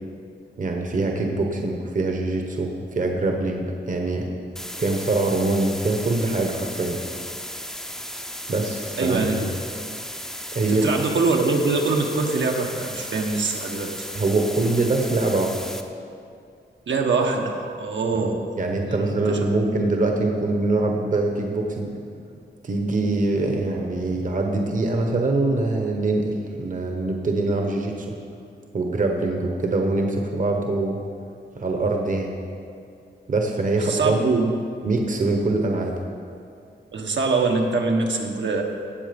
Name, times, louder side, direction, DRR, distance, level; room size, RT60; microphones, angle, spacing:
voice 1, 0.6-4.3 4.8-7.0 8.5-9.4 10.5-10.9 14.1-15.7 18.1-18.2 18.6-21.9 22.6-28.1 28.7-31.0 31.5-32.3 33.3-34.2 34.8-36.0, right 2 dB, 45° right, 2 dB, 1.0 m, -23 dB
sound 1, 4.6-15.8, equal, ahead, 0.6 m, -35 dB
voice 2, 9.0-9.4 10.7-13.9 16.9-18.4 19.1-19.5 33.8-34.5 36.9-38.6, right 3 dB, 75° right, 1 dB, 1.3 m, -23 dB
17.5 x 7.4 x 5.3 m, 2.4 s
wide cardioid pair, 170°, 19 cm